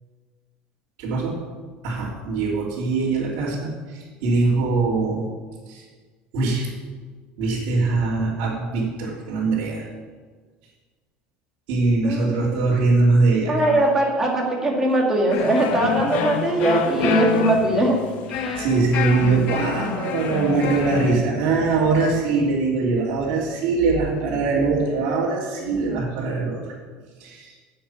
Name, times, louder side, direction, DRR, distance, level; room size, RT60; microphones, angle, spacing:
voice 1, 1.0-1.3 1.8-5.3 5.7-5.8 6.3-6.7 7.4-9.9 11.7-13.9 18.5-26.7 27.2-27.5, right 3 dB, 60° right, -8 dB, 3.2 m, -22 dB
voice 2, 12.0-12.7 13.5-18.0 18.3-18.6, right 2 dB, 15° right, -2 dB, 2.3 m, -21 dB
sound 1, 15.3-21.2, left 7 dB, 50° left, 1.3 m, -27 dB
10.5 x 8.1 x 9.0 m, 1.5 s
cardioid pair, 175°, 3 cm